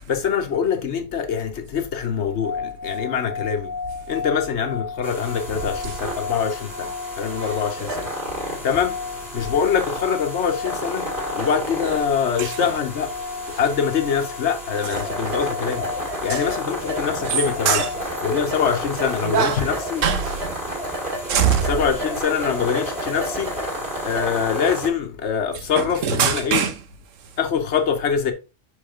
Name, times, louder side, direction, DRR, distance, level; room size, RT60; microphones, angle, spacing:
voice 1, 0.1-3.8 4.1-8.1 8.6-9.0 9.3-13.2 13.5-15.9 16.2-17.8 18.2-20.0 21.7-23.6 24.0-26.6 27.4-28.3, left 7 dB, 65° left, 1.1 m, -24 dB
sound 1, 2.1-19.3, left 5 dB, 65° right, 2.3 m, -34 dB
sound 2, 5.0-24.9, equal, 45° right, 2.5 m, -31 dB
voice 2, 5.8-6.2 6.8-7.7 8.6-8.7 12.4-12.7 13.5-13.6 16.3-16.5 17.3-17.4 17.6-17.9 19.2-19.7 20.0-21.7 25.5-26.8 27.2-27.3, right 8 dB, 80° right, 1.2 m, -25 dB
5.7 x 4.9 x 3.6 m
omnidirectional pair, 1.3 m